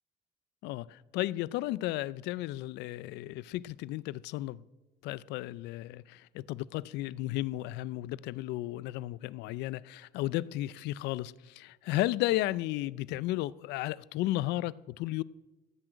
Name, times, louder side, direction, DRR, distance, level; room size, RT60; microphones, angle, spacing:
voice 1, 0.6-4.6 5.0-15.2, left 16 dB, 85° left, 0.5 m, -34 dB
15.0 x 6.2 x 8.9 m
cardioid pair, 110°, 17 cm